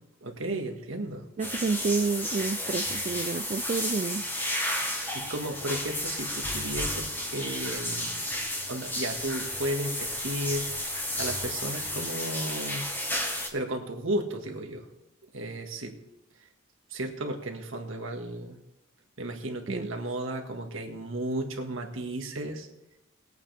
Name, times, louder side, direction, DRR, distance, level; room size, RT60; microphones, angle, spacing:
voice 1, 0.2-1.3 5.1-8.1 8.5-10.7 11.1-12.9 13.5-14.9 15.3-16.0 16.9-18.6 19.2-22.7, right 1 dB, 65° right, 3 dB, 1.8 m, -34 dB
sound 1, 1.4-13.5, left 1 dB, 10° left, 1.5 m, -32 dB
voice 2, 1.4-4.2 19.7-19.9, right 4 dB, 35° right, 9 dB, 0.3 m, -29 dB
20.0 x 8.8 x 3.5 m, 0.88 s
head